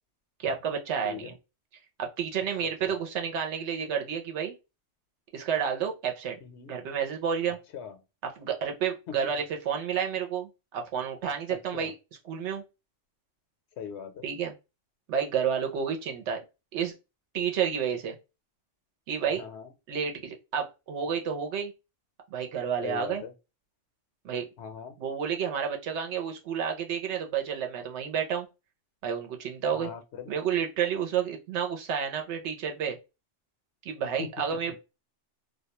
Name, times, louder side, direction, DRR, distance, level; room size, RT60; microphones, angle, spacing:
voice 1, 0.4-1.3 2.0-4.5 5.3-6.4 6.7-7.6 8.2-11.9 12.3-12.6 14.2-14.5 15.1-16.4 16.7-16.9 17.3-18.2 19.1-19.4 19.9-21.7 22.3-23.2 24.2-24.5 25.0-28.5 29.0-29.9 30.3-33.0 33.8-34.8, right 7 dB, 75° right, 0.9 m, -30 dB
voice 2, 6.4-6.8 7.7-8.0 11.7-11.9 13.8-14.2 19.4-19.7 22.8-23.3 24.6-24.9 29.7-30.3, left 8 dB, 70° left, 0.8 m, -40 dB
2.3 x 2.2 x 2.8 m
omnidirectional pair, 1.2 m